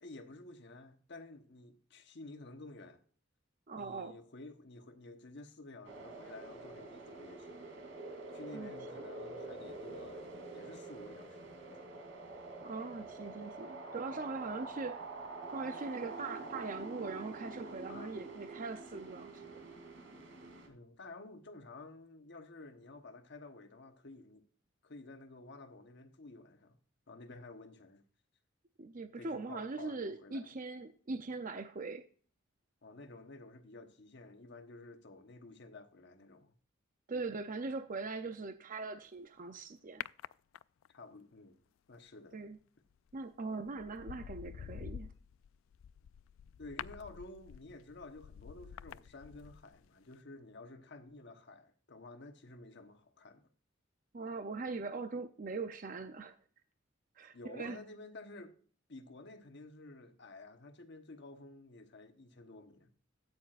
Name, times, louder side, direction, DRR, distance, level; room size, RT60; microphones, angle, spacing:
voice 1, 0.0-3.0 3.8-7.7 8.3-11.9 17.9-18.2 20.7-24.5 24.8-26.8 27.1-28.0 29.2-30.5 32.8-36.5 40.9-41.6 41.9-42.4 46.6-53.5 57.3-58.6 58.9-62.9, left 2 dB, 60° left, 1.2 m, -52 dB
voice 2, 3.7-4.2 8.5-8.7 12.6-15.0 15.5-19.6 28.8-32.0 37.1-40.0 42.3-42.6 43.1-45.1 54.1-56.4 57.2-57.8, right 3 dB, 45° right, 0.6 m, -41 dB
sound 1, 5.8-20.7, right 3 dB, 70° right, 2.9 m, -46 dB
sound 2, 40.0-41.0 42.9-43.2 43.7-49.9 50.1-50.2, left 9 dB, 85° left, 0.3 m, -48 dB
13.5 x 9.4 x 2.5 m
head